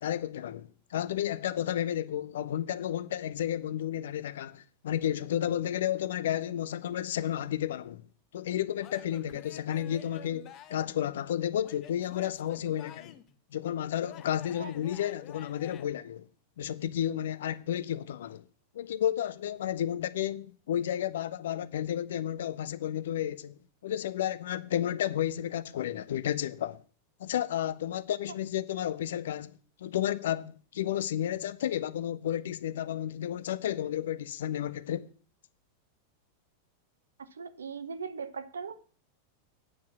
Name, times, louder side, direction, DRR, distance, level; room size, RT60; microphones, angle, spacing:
voice 1, 0.0-8.1 8.3-13.2 13.5-16.2 16.6-18.4 18.7-26.8 27.2-29.5 29.8-35.1, left 11 dB, 60° left, 0.7 m, -32 dB
Male speech man speaking / Yell / Laughter, 8.8-10.9 11.6-13.3 14.0-15.8, left 9 dB, 35° left, 1.0 m, -50 dB
voice 2, 37.3-38.8, right 6 dB, 70° right, 1.0 m, -39 dB
9.4 x 7.5 x 6.1 m
figure-of-eight pair, 90°, 0 cm